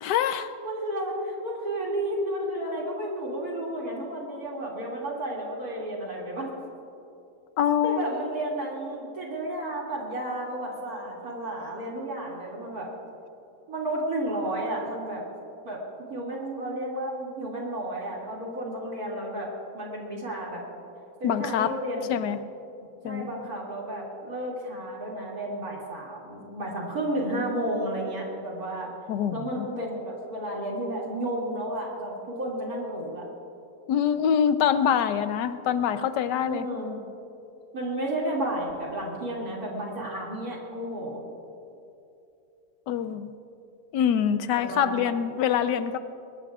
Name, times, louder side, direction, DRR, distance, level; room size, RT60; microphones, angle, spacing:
voice 1, 0.0-0.5 7.6-8.0 21.2-21.7 22.1-22.4 23.0-23.5 29.1-29.7 33.9-36.7 42.9-43.3 43.9-46.0, left 8 dB, 80° left, 11 dB, 1.3 m, -25 dB
voice 2, 0.6-6.5 7.8-12.9 13.7-15.2 15.6-19.5 19.7-20.6 21.2-22.2 23.0-28.9 29.3-33.3 36.4-37.0 37.7-41.2 44.5-45.1, right 1 dB, 60° right, -3 dB, 3.0 m, -32 dB
21.5 x 21.0 x 2.4 m, 2.7 s
omnidirectional pair, 1.8 m